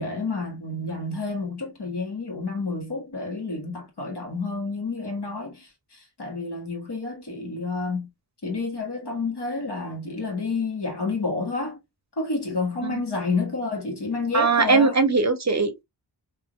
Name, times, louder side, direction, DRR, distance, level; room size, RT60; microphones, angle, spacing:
voice 1, 0.0-8.1 8.4-11.8 12.2-15.0, left 3 dB, 65° left, 1.5 m, -29 dB
voice 2, 14.3-15.8, right 4 dB, 40° right, 0.6 m, -20 dB
3.5 x 2.7 x 2.3 m
wide cardioid pair, 75°, 44 cm